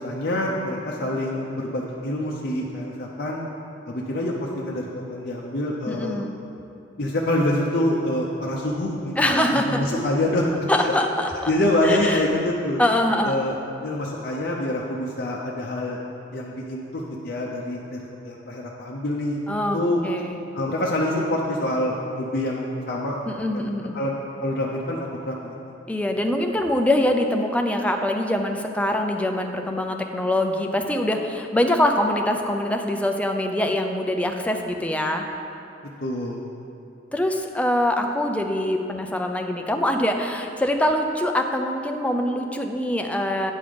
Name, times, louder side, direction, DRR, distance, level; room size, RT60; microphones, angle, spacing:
voice 1, 0.0-3.4 3.9-6.2 7.0-10.9 11.5-12.8 13.2-13.6 13.8-16.0 16.3-19.4 19.7-20.0 20.5-23.2 23.5-23.7 23.9-24.1 24.4-25.0 25.2-25.6 36.0-36.5, left 1 dB, 55° left, -3 dB, 0.7 m, -26 dB
voice 2, 5.9-6.4 9.2-9.8 10.7-11.5 11.8-12.2 12.8-13.4 19.5-20.4 23.3-24.0 25.9-35.3 37.1-43.5, left 1 dB, 10° left, 4 dB, 0.5 m, -24 dB
9.3 x 5.4 x 5.1 m, 2.7 s
head